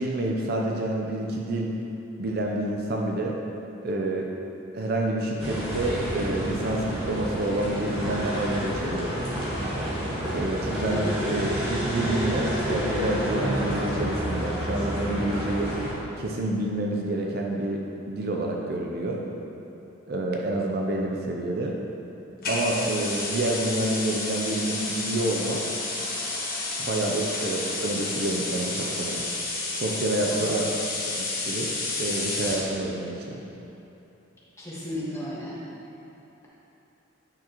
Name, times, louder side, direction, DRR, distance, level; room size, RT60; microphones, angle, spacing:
voice 1, 0.0-1.7 2.2-3.4 3.8-4.3 4.7-9.1 10.3-15.7 16.2-19.2 20.1-21.8 22.5-25.6 26.8-29.2 29.7-30.7 31.2-33.4, right 1 dB, 50° right, 0 dB, 0.5 m, -28 dB
sound 1, 5.4-15.9, equal, 25° right, 1.6 m, -29 dB
sound 2, 22.4-32.7, left 2 dB, 45° left, 1.4 m, -31 dB
voice 2, 34.6-35.6, left 1 dB, 15° left, -9 dB, 1.6 m, -34 dB
8.8 x 6.2 x 3.0 m, 2.9 s
head